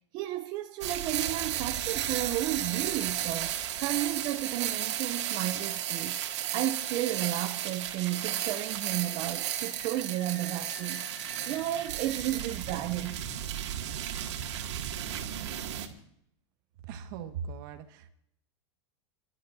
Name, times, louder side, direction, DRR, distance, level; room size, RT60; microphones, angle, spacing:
voice 1, 0.1-13.2, right 14 dB, 30° right, 0.5 m, -33 dB
sound 1, 0.8-15.9, right 11 dB, 75° right, 2.2 m, -34 dB
Animal, 5.2-5.6 6.1-6.2 7.8-8.6 9.2-13.2, left 2 dB, 15° left, 2.1 m, -51 dB
voice 2, 16.8-18.1, right 7 dB, 45° right, 1.6 m, -39 dB
28.5 x 12.5 x 2.7 m
supercardioid pair, 165°, 15 cm